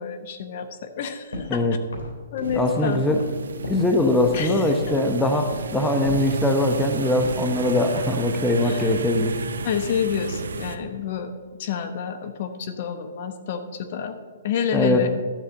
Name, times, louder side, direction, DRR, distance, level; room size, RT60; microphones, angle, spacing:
voice 1, 0.0-1.6 2.3-3.1 4.3-4.7 8.6-8.9 9.6-11.3 11.6-14.2 14.4-15.1, left 7 dB, 50° left, 8 dB, 1.0 m, -29 dB
sound 1, 1.3-1.6 1.9-3.9 4.2-4.4 4.8-5.1 5.5-5.7 6.0-6.9 7.2-8.5 9.5-10.4 10.7-11.1, left 2 dB, 75° left, 3.6 m, -37 dB
sound 2, 2.4-10.8, right 5 dB, 80° right, 0.8 m, -32 dB
voice 2, 2.5-3.2 3.7-9.3 14.7-15.1, left 1 dB, 5° left, 4 dB, 0.8 m, -21 dB
12.0 x 4.2 x 7.7 m, 1.5 s
hypercardioid pair, 140°, 0 cm